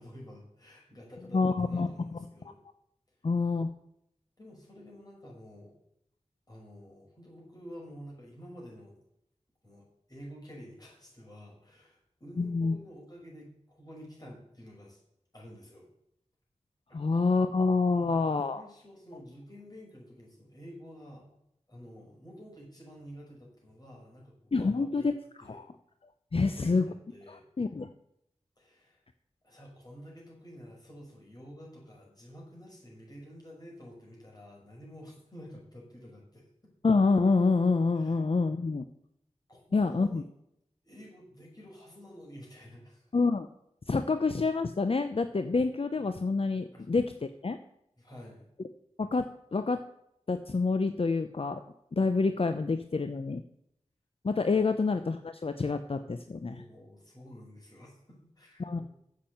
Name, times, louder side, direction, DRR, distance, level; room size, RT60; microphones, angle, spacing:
voice 1, 0.0-2.6 4.4-5.7 6.5-9.0 9.6-15.0 15.3-15.9 16.9-17.0 17.9-18.2 18.5-21.3 21.7-25.1 25.4-25.7 26.4-27.5 28.6-29.0 29.4-36.5 38.0-38.2 39.5-40.2 40.8-43.1 46.7-46.8 48.0-48.5 56.4-58.8, equal, 30° left, -3 dB, 5.7 m, -50 dB
voice 2, 1.3-2.3 3.2-3.7 12.4-12.8 16.9-18.6 24.5-25.1 25.5-25.6 26.3-26.8 27.3-27.9 36.8-38.8 39.7-40.2 43.1-43.5 43.9-47.6 49.0-49.8 50.3-51.6 51.9-53.4 54.2-56.6 58.6-58.8, left 4 dB, 50° left, 9 dB, 0.6 m, -27 dB
8.5 x 7.5 x 7.8 m, 0.76 s
wide cardioid pair, 45°, 12 cm